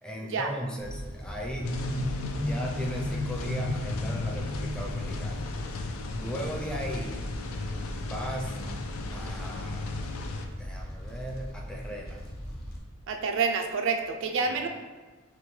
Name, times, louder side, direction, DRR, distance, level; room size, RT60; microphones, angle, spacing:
voice 1, 0.0-1.8 2.4-5.5 6.2-7.2 8.0-8.5 9.1-10.1 10.6-12.3, equal, 5° left, -1 dB, 0.5 m, -37 dB
Fire, 0.8-12.8, equal, 50° left, 0.8 m, -40 dB
sound 1, 1.6-10.5, left 2 dB, 80° left, 0.4 m, -34 dB
voice 2, 13.1-14.7, right 5 dB, 65° right, 5 dB, 0.4 m, -28 dB
5.9 x 2.2 x 3.1 m, 1.3 s
head